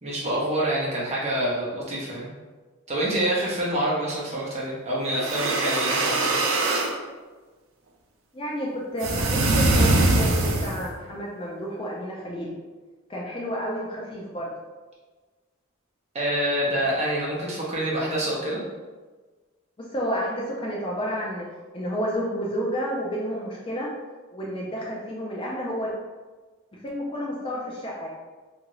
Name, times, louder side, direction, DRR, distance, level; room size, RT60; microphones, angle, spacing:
voice 1, 0.0-2.3 2.9-6.4 16.1-18.6, right 1 dB, 30° right, -5 dB, 0.7 m, -26 dB
sound 1, 5.1-6.9 9.0-10.9, right 2 dB, 65° right, 0.4 m, -22 dB
voice 2, 8.3-12.5 13.1-14.5 19.8-21.5 21.7-23.9 24.3-25.9 26.8-28.1, equal, 25° left, -3 dB, 0.3 m, -30 dB
2.7 x 2.5 x 3.0 m, 1.3 s
head